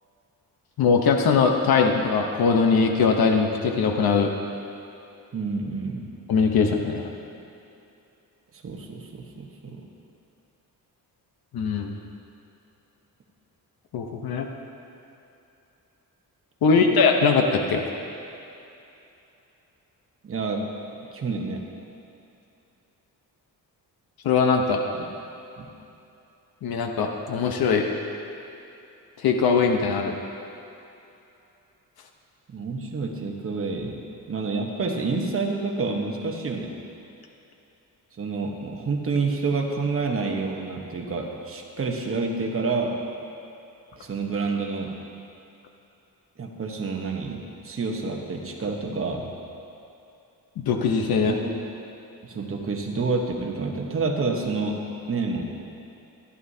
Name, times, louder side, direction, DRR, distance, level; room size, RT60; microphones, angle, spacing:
voice 1, 0.8-4.3 6.3-7.1 11.5-11.9 13.9-14.5 16.6-17.8 24.2-24.8 26.6-27.9 29.2-30.2 50.6-51.3, left 5 dB, 80° left, 3 dB, 0.9 m, -21 dB
voice 2, 5.3-6.1 8.6-9.9 16.7-16.8 20.2-20.6 21.1-21.6 24.9-25.1 25.6-25.7 32.5-34.0 34.3-36.7 38.2-42.9 44.0-44.9 46.4-47.4 47.6-49.3 51.3-51.5 52.2-54.8 55.1-55.4, right 4 dB, 40° right, 1 dB, 1.1 m, -28 dB
15.5 x 11.0 x 2.8 m, 2.8 s
wide cardioid pair, 175°, 36 cm